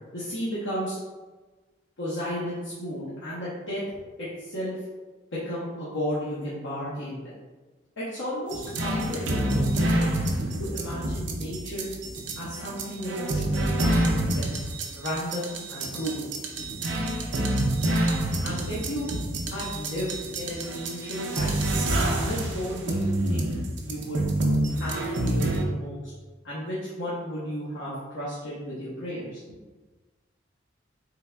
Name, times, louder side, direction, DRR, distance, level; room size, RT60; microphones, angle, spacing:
voice 1, 0.1-1.0 2.0-3.8 4.2-4.8 5.3-7.3 8.0-10.1 10.6-11.9 12.4-14.6 14.9-16.3 18.4-19.0 19.4-21.7 22.2-23.5 23.8-24.3 24.7-26.0 26.4-29.4, equal, 85° left, -9 dB, 0.8 m, -34 dB
sound 1, 8.5-25.6, right 1 dB, 75° right, 0.5 m, -27 dB
3.8 x 3.3 x 2.2 m, 1.3 s
head